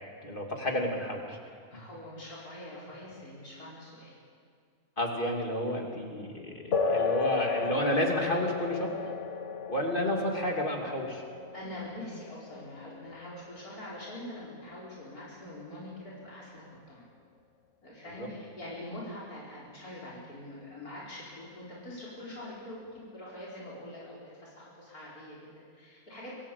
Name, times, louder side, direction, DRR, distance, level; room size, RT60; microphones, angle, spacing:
voice 1, 0.2-1.4 5.0-9.0 9.7-11.2 18.2-18.3, left 1 dB, 35° left, 1 dB, 3.2 m, -31 dB
voice 2, 1.7-4.1 11.5-17.0 17.8-26.3, left 1 dB, 85° left, -5 dB, 5.1 m, -44 dB
sound 1, 6.7-14.7, left 5 dB, 55° left, 1.4 m, -34 dB
25.5 x 17.0 x 8.6 m, 2.2 s
omnidirectional pair, 1.5 m